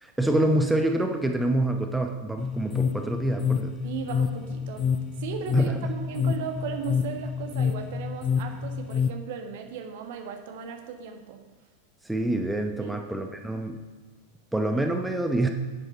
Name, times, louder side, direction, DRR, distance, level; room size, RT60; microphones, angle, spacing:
voice 1, 0.0-3.8 5.5-5.9 12.0-13.8 14.5-15.5, right 1 dB, 5° right, 4 dB, 0.9 m, -26 dB
sound 1, 2.4-9.1, left 6 dB, 25° left, 0.5 m, -28 dB
voice 2, 3.8-4.9 5.2-11.4 12.8-13.0, right 7 dB, 50° right, 5 dB, 1.5 m, -36 dB
9.7 x 9.5 x 5.5 m, 1.4 s
figure-of-eight pair, 90°, 0 cm